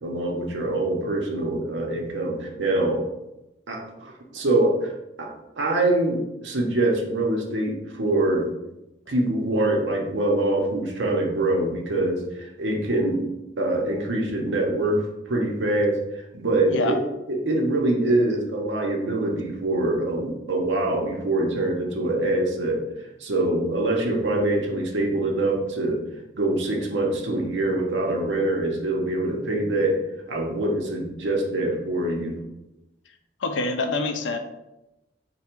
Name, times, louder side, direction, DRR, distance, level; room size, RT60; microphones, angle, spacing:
voice 1, 0.0-3.0 3.7-4.9 5.2-5.3 5.6-8.5 9.1-13.3 13.6-17.0 17.3-22.8 23.2-26.0 26.3-30.0 30.3-32.4, right 2 dB, 80° right, 0 dB, 0.7 m, -24 dB
voice 2, 33.4-34.4, left 3 dB, 80° left, 6 dB, 0.4 m, -26 dB
3.3 x 2.2 x 4.4 m, 0.94 s
head